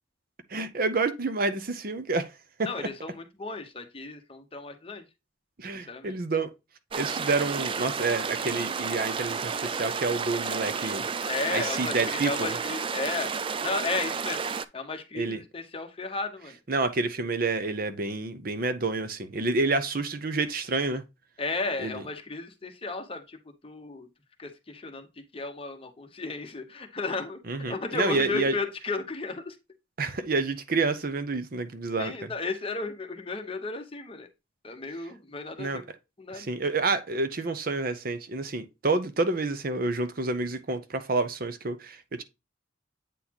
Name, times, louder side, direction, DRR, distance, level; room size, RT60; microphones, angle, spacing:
voice 1, 0.5-2.3 2.6-2.9 5.6-6.5 7.0-11.1 11.5-12.5 15.1-15.4 16.7-21.0 21.8-22.0 27.5-28.5 30.0-32.3 35.6-35.8 36.3-42.2, right 3 dB, 45° right, 0.7 m, -28 dB
voice 2, 2.6-5.0 5.8-6.2 11.2-13.3 13.6-14.4 14.7-16.6 21.4-23.4 23.6-24.1 24.4-27.4 27.7-29.6 32.0-34.3 34.6-35.8 36.2-36.5, left 3 dB, 30° left, 0.9 m, -34 dB
sound 1, 6.9-14.6, right 5 dB, 25° right, 0.3 m, -31 dB
8.3 x 4.1 x 2.9 m
head